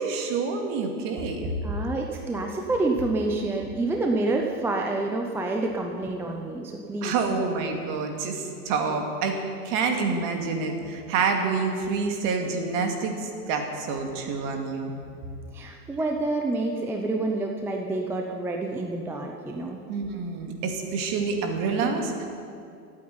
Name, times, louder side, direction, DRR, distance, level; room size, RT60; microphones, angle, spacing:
voice 1, 0.0-1.5 7.0-9.4 9.6-14.9 19.9-22.3, right 4 dB, 40° right, 3 dB, 2.4 m, -27 dB
voice 2, 1.6-7.1 15.5-19.8 21.8-21.9, right 2 dB, 5° right, 1 dB, 0.5 m, -28 dB
14.5 x 8.8 x 9.6 m, 2.4 s
supercardioid pair, 140°, 47 cm